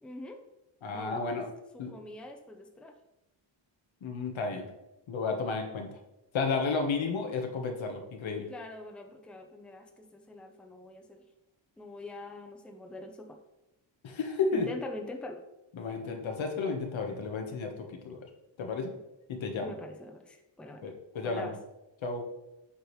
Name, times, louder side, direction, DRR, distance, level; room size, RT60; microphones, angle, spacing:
voice 1, 0.0-0.4 0.9-1.4 1.7-2.9 8.5-11.2 11.8-13.4 14.5-15.4 19.6-20.9 21.2-21.5, left 1 dB, ahead, 4 dB, 0.6 m, -44 dB
voice 2, 0.8-1.5 1.8-1.9 4.0-4.7 5.1-6.0 6.3-8.5 14.0-14.7 15.8-18.3 18.6-18.9 19.3-19.7 20.8-21.5 22.0-22.2, left 4 dB, 80° left, 3 dB, 1.2 m, -32 dB
8.1 x 4.9 x 3.1 m, 0.92 s
wide cardioid pair, 125°, 46 cm